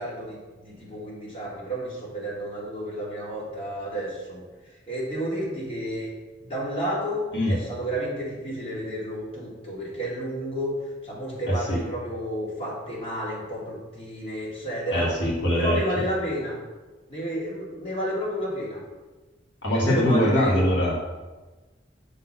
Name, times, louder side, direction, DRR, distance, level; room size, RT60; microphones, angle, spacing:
voice 1, 0.0-4.4 4.9-6.1 6.4-10.7 11.0-15.1 15.6-16.6 17.1-18.8 19.7-20.5, equal, 30° left, -6 dB, 2.3 m, -31 dB
voice 2, 11.5-11.8 14.9-15.8 19.6-21.1, left 1 dB, 70° left, -4 dB, 1.8 m, -23 dB
6.5 x 4.0 x 5.6 m, 1.2 s
head